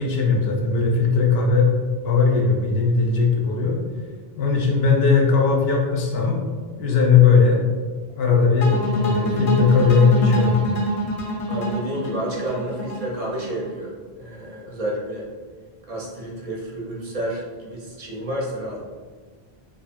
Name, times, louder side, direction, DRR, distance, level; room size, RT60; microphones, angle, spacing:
voice 1, 0.0-1.7 2.0-3.8 4.4-6.4 6.8-7.6 8.2-10.5, left 5 dB, 70° left, -1 dB, 0.8 m, -18 dB
sound 1, 8.6-13.7, equal, 45° left, 0.5 m, -25 dB
voice 2, 11.5-15.3 15.9-18.8, right 1 dB, 45° right, -3 dB, 0.5 m, -30 dB
2.6 x 2.4 x 2.5 m, 1.5 s
omnidirectional pair, 1.1 m